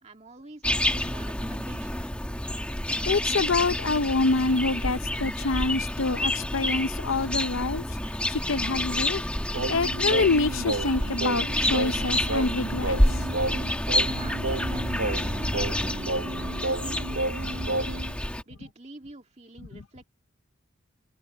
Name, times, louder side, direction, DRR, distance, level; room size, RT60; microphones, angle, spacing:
voice 1, 0.0-2.1 14.1-14.4 14.7-18.0 18.5-20.0, right 2 dB, 30° right, 2.3 m, -47 dB
sound 1, 0.6-18.4, left 1 dB, 5° left, 1.3 m, -28 dB
voice 2, 3.1-7.8 8.3-9.2 9.7-13.0, left 3 dB, 80° left, 0.7 m, -26 dB
Singing, 9.5-18.1, right 2 dB, 80° right, 0.9 m, -32 dB
head